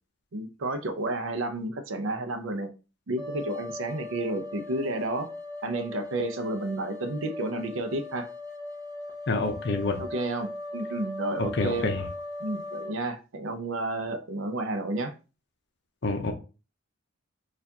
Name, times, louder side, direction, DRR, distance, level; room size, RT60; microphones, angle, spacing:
voice 1, 0.3-2.7 3.1-5.3 5.6-8.3 10.0-11.9 12.4-15.1, right 2 dB, 75° right, 8 dB, 0.5 m, -31 dB
sound 1, 3.2-12.9, left 2 dB, 20° right, 0.7 m, -39 dB
voice 2, 9.3-10.0 11.4-12.1 16.0-16.3, left 3 dB, 55° left, 6 dB, 0.6 m, -27 dB
4.3 x 2.4 x 2.7 m, 0.32 s
head